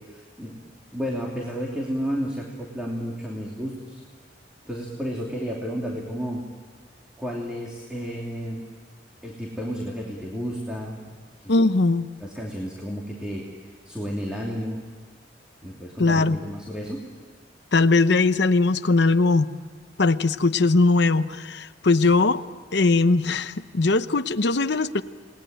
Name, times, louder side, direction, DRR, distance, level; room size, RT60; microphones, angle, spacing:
voice 1, 0.1-0.5 0.9-4.0 4.6-6.4 7.2-8.6 9.2-11.0 12.2-14.8 15.6-17.0, equal, 5° right, -2 dB, 3.0 m, -32 dB
voice 2, 11.5-12.1 16.0-16.4 17.7-19.5 20.0-22.4 22.7-25.0, left 3 dB, 70° left, 10 dB, 0.8 m, -20 dB
28.5 x 20.0 x 9.0 m, 1.5 s
head